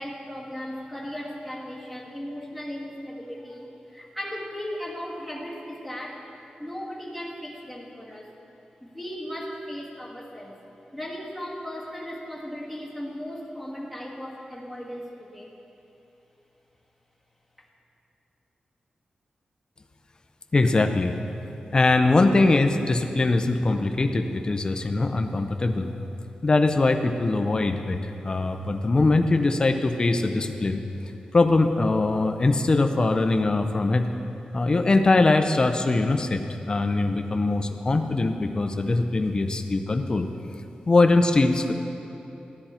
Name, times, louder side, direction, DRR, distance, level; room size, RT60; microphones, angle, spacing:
voice 1, 0.0-6.2 6.6-8.3 8.8-10.6 10.9-15.5, equal, 5° right, -4 dB, 1.8 m, -36 dB
voice 2, 20.5-21.2 21.7-25.9 26.4-30.8 31.3-34.1 34.5-36.4 36.7-40.3 40.9-41.7, left 2 dB, 30° left, 6 dB, 0.6 m, -22 dB
15.0 x 10.0 x 4.3 m, 3.0 s
wide cardioid pair, 150°, 3 cm